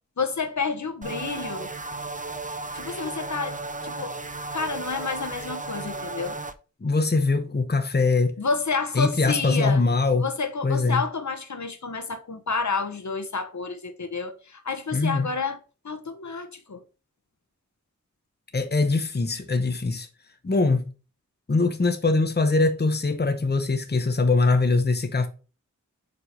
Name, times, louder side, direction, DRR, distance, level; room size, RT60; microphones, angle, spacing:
voice 1, 0.2-1.7 2.7-3.6 3.8-4.1 4.5-6.4 8.4-9.8 10.2-15.6 15.8-16.8, left 4 dB, 65° left, 1.1 m, -29 dB
sound 1, 1.0-6.5, right 3 dB, 25° right, 0.7 m, -34 dB
voice 2, 6.8-8.4 8.9-10.3 10.6-11.0 14.9-15.3 18.5-20.1 20.4-20.9 21.5-25.3, left 3 dB, 30° left, 1.0 m, -22 dB
4.9 x 4.4 x 5.1 m
cardioid pair, 40°, 31 cm